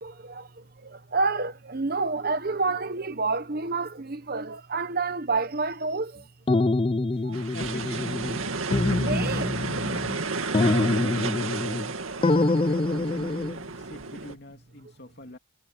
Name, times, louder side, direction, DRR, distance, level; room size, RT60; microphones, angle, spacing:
voice 1, 0.0-0.5 0.8-6.2 7.2-7.3 9.1-9.6 9.9-10.1, right 3 dB, 45° right, 1.1 m, -29 dB
sound 1, 6.5-8.4 8.7-10.2 10.5-11.9 12.2-13.6, left 2 dB, 25° left, 0.4 m, -25 dB
voice 2, 7.2-8.2 10.6-11.7 12.2-13.3 13.7-15.4, left 1 dB, 50° left, 2.8 m, -43 dB
sound 2, 7.3-14.3, right 3 dB, 80° right, 2.3 m, -32 dB
head